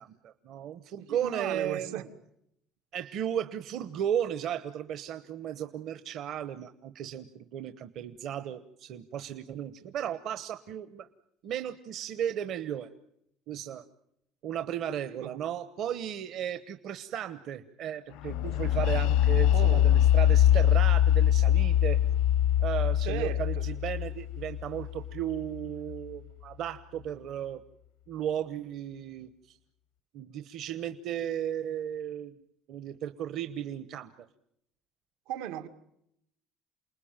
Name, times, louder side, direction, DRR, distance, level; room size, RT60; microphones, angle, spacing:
voice 1, 0.0-2.1 2.9-11.1 11.4-12.9 13.5-13.8 14.4-22.0 22.6-27.6 28.1-29.6 30.1-32.4 32.7-34.3, right 10 dB, 50° right, 1.0 m, -35 dB
voice 2, 1.1-2.0 15.2-15.4 19.5-19.9 23.0-23.6 35.3-35.7, right 11 dB, 85° right, 2.2 m, -36 dB
sound 1, 18.2-26.0, left 11 dB, 80° left, 0.9 m, -24 dB
28.5 x 20.5 x 8.9 m
cardioid pair, 165°, 0 cm